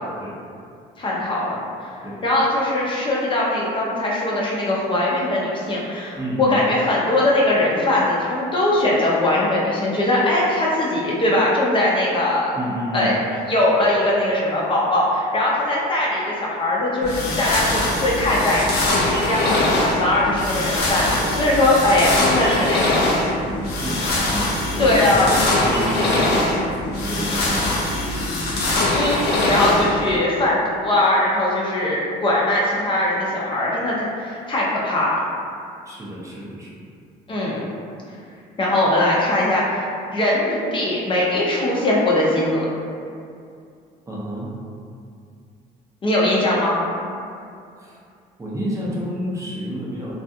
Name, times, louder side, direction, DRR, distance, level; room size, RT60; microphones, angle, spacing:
voice 1, 1.0-1.9 2.2-12.5 12.9-13.1 13.5-18.8 19.3-23.0 24.8-25.3 25.6-25.7 28.9-35.2 37.3-37.7 38.6-39.9 40.1-42.7 46.0-46.8, left 1 dB, 30° left, -5 dB, 0.5 m, -20 dB
voice 2, 6.2-6.6 12.6-13.2 19.4-19.7 23.4-28.1 28.4-28.6 35.9-36.8 44.1-44.5 47.8-48.0 48.4-50.1, equal, 20° right, -6 dB, 0.5 m, -30 dB
sound 1, 17.0-30.2, left 1 dB, 75° left, 0.5 m, -22 dB
2.4 x 2.4 x 2.6 m, 2.4 s
cardioid pair, 110°, 17 cm